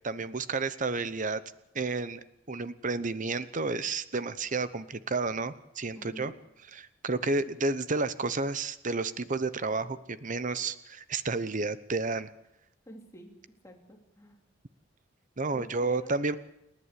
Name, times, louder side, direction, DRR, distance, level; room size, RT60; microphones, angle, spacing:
voice 1, 0.0-1.4 1.7-6.3 6.7-12.3 15.4-16.4, right 3 dB, 40° right, 14 dB, 0.9 m, -31 dB
voice 2, 5.9-6.3 12.9-14.4 15.5-16.2, equal, 15° left, 1 dB, 3.1 m, -49 dB
29.0 x 11.0 x 8.4 m, 0.85 s
head